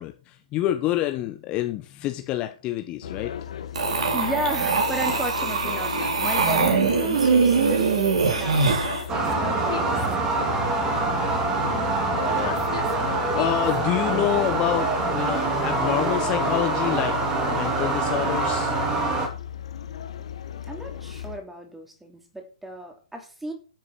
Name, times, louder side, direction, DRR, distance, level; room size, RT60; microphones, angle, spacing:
voice 1, 0.0-3.3 11.6-12.6 13.3-18.7, left 13 dB, 30° left, 6 dB, 1.2 m, -28 dB
sound 1, 3.0-21.4, left 9 dB, 60° left, 1.9 m, -35 dB
sound 2, 3.8-9.0, right 5 dB, 60° right, 4.6 m, -22 dB
voice 2, 4.1-8.0 8.3-8.7 9.3-10.5 20.7-23.5, right 1 dB, 5° right, 3 dB, 3.1 m, -34 dB
sound 3, 9.1-19.3, right 3 dB, 20° right, 3.0 m, -25 dB
13.0 x 7.6 x 4.8 m, 0.37 s
figure-of-eight pair, 125°, 4 cm